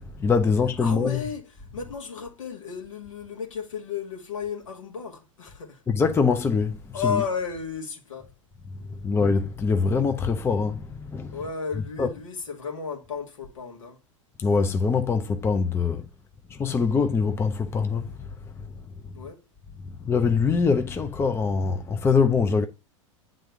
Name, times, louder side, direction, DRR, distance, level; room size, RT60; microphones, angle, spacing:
voice 1, 0.2-1.2 5.9-6.8 7.0-7.2 9.0-11.4 12.0-12.1 14.4-16.1 16.5-18.1 20.0-22.7, left 5 dB, 15° left, 0.6 m, -23 dB
voice 2, 0.8-5.8 6.9-8.3 11.3-14.0 19.1-19.4, left 6 dB, 75° left, 2.1 m, -33 dB
9.1 x 3.8 x 3.6 m
figure-of-eight pair, 90°, 17 cm